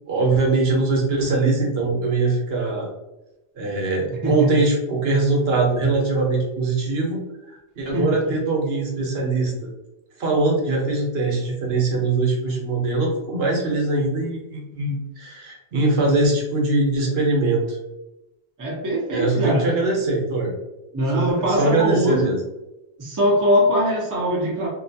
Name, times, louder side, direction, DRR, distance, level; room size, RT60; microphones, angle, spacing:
voice 1, 0.1-2.9 3.6-9.5 10.2-17.8 19.1-20.5 21.1-22.4, right 3 dB, 70° right, -1 dB, 1.0 m, -22 dB
voice 2, 4.2-4.6 7.9-8.2 18.6-19.7 20.9-22.3 23.0-24.7, equal, 20° right, -3 dB, 0.6 m, -21 dB
2.7 x 2.2 x 2.7 m, 0.97 s
omnidirectional pair, 1.1 m